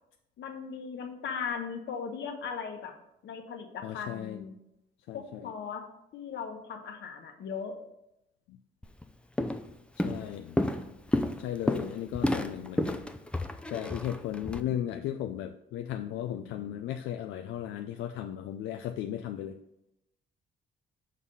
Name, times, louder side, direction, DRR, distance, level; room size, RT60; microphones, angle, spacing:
voice 1, 0.4-2.9 3.2-4.5 5.1-5.8 6.1-7.7, left 6 dB, 65° left, 4 dB, 1.2 m, -38 dB
voice 2, 3.8-4.5 5.1-5.5 8.5-8.6 10.0-10.6 11.4-13.1 13.7-19.6, left 11 dB, 90° left, 6 dB, 0.4 m, -36 dB
Walk footsteps, 8.8-9.0 9.4-9.7 10.0-14.6, left 1 dB, 5° left, 0.5 m, -30 dB
6.4 x 3.7 x 5.4 m, 0.84 s
cardioid pair, 90°, 20 cm